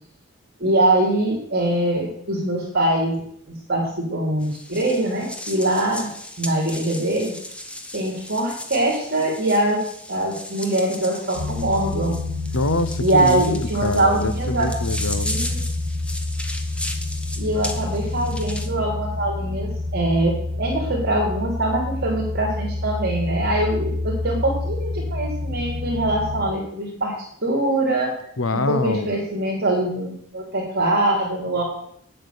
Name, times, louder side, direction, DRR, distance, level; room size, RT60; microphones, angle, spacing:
voice 1, 0.6-3.1 3.5-6.1 6.4-7.3 7.9-9.8 10.1-12.2 13.0-14.7 15.2-15.6 17.3-27.1 27.4-28.1 28.5-31.6, right 1 dB, 50° right, -3 dB, 3.2 m, -23 dB
sound 1, 4.4-18.7, left 1 dB, 5° left, 0.9 m, -36 dB
sound 2, 11.3-26.4, left 2 dB, 30° right, 3.1 m, -28 dB
voice 2, 12.5-15.3 28.4-29.1, left 2 dB, 70° left, 12 dB, 0.9 m, -25 dB
9.0 x 7.7 x 6.9 m, 0.68 s
head